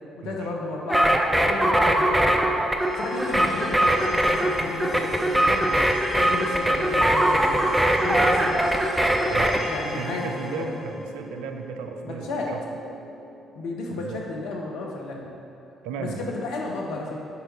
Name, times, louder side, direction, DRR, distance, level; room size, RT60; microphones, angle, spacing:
voice 1, 0.2-2.5 2.9-5.8 6.1-7.6 8.0-8.5 9.6-11.0 12.0-12.5 13.5-15.3 16.0-17.2, left 2 dB, 70° left, -1 dB, 1.0 m, -33 dB
sound 1, 0.9-9.6, right 1 dB, 10° right, 0.7 m, -22 dB
sound 2, 2.8-13.8, left 1 dB, 30° left, 1.5 m, -38 dB
voice 2, 9.9-12.6 13.9-14.2 15.8-16.3, right 5 dB, 75° right, 5 dB, 0.5 m, -35 dB
6.8 x 5.1 x 4.6 m, 2.7 s
hypercardioid pair, 45°, 0 cm